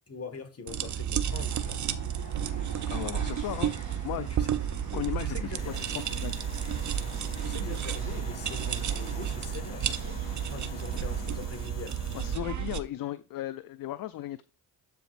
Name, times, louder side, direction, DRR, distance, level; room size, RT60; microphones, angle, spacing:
voice 1, 0.0-1.8 2.8-2.9 4.2-4.5 4.9-5.8 7.4-12.0, left 4 dB, 35° left, 1.7 m, -43 dB
sound 1, 0.7-12.8, right 9 dB, 45° right, 0.7 m, -32 dB
Train, 1.2-11.7, left 2 dB, 20° left, 2.5 m, -49 dB
voice 2, 2.9-3.7 4.0-4.3 4.9-6.4 12.1-14.4, left 14 dB, 55° left, 0.5 m, -36 dB
sound 2, 5.6-12.4, left 9 dB, 85° left, 1.0 m, -47 dB
12.0 x 4.6 x 2.6 m
supercardioid pair, 55°, 42 cm